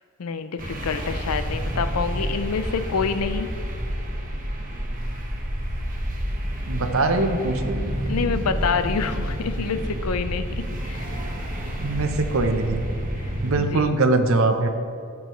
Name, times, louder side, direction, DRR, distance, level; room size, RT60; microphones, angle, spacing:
voice 1, 0.2-3.5 8.1-11.1 13.6-13.9, left 5 dB, 90° left, 10 dB, 0.5 m, -27 dB
sound 1, 0.6-13.5, equal, 40° right, 1.2 m, -29 dB
voice 2, 6.7-8.0 11.8-12.8 13.4-14.7, right 3 dB, 65° right, 7 dB, 0.7 m, -22 dB
14.5 x 6.1 x 3.1 m, 2.4 s
head